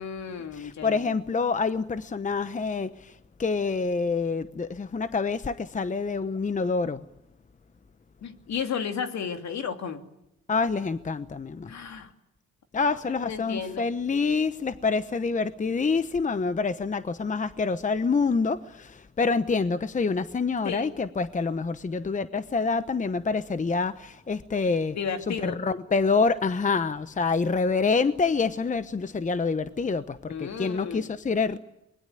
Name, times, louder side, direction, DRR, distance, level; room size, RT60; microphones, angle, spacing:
voice 1, 0.0-1.2 8.2-10.0 11.7-12.1 12.8-13.9 20.6-20.9 24.7-25.6 30.3-31.1, left 7 dB, 65° left, 6 dB, 2.8 m, -34 dB
voice 2, 0.6-2.9 3.4-7.0 10.5-11.7 12.7-25.0 25.3-31.6, left 4 dB, 25° left, 12 dB, 1.0 m, -27 dB
24.5 x 21.5 x 9.2 m, 0.85 s
cardioid pair, 90°, 30 cm